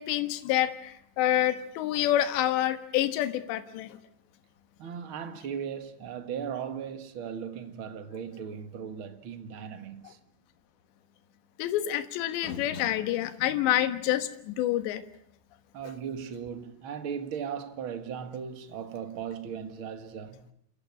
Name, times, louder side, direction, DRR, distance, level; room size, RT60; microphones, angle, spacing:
voice 1, 0.0-4.0 11.6-15.0, left 12 dB, 75° left, 3.6 m, -27 dB
voice 2, 4.8-10.2 15.7-20.4, right 7 dB, 60° right, 1.3 m, -37 dB
28.5 x 14.5 x 9.8 m
omnidirectional pair, 5.2 m